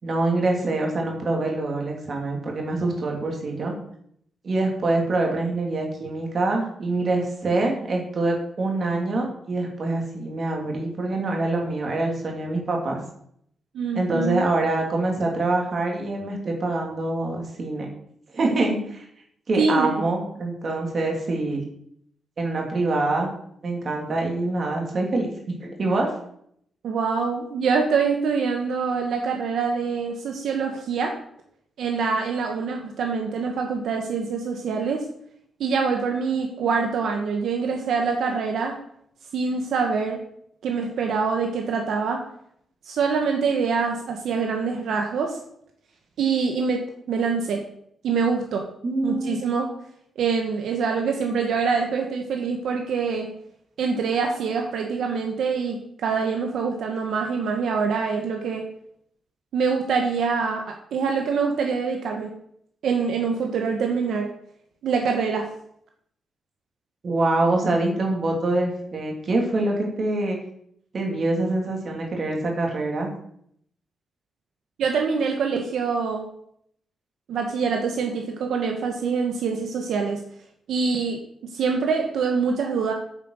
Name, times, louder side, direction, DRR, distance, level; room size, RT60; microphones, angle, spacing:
voice 1, 0.0-3.7 4.4-13.0 13.9-17.9 18.3-19.1 19.5-21.6 22.4-23.3 23.6-26.1 48.8-49.3 67.0-70.4 70.9-73.1, right 2 dB, 40° right, 1 dB, 2.8 m, -25 dB
voice 2, 13.7-14.5 19.6-19.9 26.8-31.2 31.8-35.0 35.6-38.8 39.3-40.2 40.6-42.2 42.8-45.4 46.2-46.8 47.1-47.6 48.0-48.7 49.0-49.7 50.1-53.3 53.8-58.7 59.5-62.3 62.8-64.3 64.8-65.5 74.8-76.2 77.3-80.2 80.7-81.2 81.5-82.9, right 5 dB, 70° right, 2 dB, 1.5 m, -25 dB
9.1 x 7.7 x 6.5 m, 0.69 s
wide cardioid pair, 170°, 0 cm